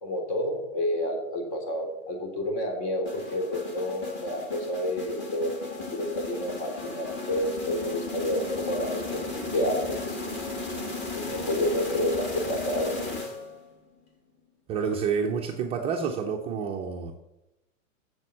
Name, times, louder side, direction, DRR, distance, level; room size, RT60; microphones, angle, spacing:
voice 1, 0.0-5.5 5.9-9.2 9.5-10.2 11.1-13.2, left 1 dB, 50° left, 3 dB, 3.6 m, -29 dB
sound 1, 3.0-13.7, left 3 dB, 25° left, 2.2 m, -35 dB
voice 2, 14.7-17.1, right 6 dB, 15° right, 1 dB, 0.4 m, -29 dB
7.2 x 7.1 x 7.4 m, 0.95 s
hypercardioid pair, 135°, 40 cm